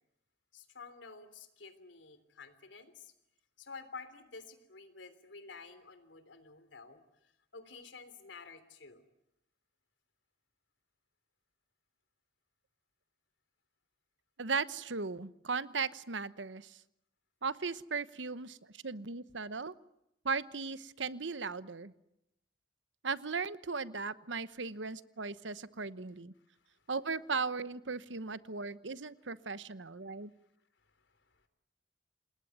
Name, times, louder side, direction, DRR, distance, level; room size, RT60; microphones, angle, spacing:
voice 1, 0.5-3.1 3.6-9.0 26.5-26.8 30.0-30.1 30.8-31.5, left 4 dB, 85° left, 11 dB, 3.3 m, -51 dB
voice 2, 14.4-16.8 17.4-19.7 20.2-21.9 23.0-26.3 26.9-30.3, right 4 dB, 85° right, 15 dB, 1.1 m, -37 dB
28.0 x 20.5 x 9.3 m, 0.84 s
head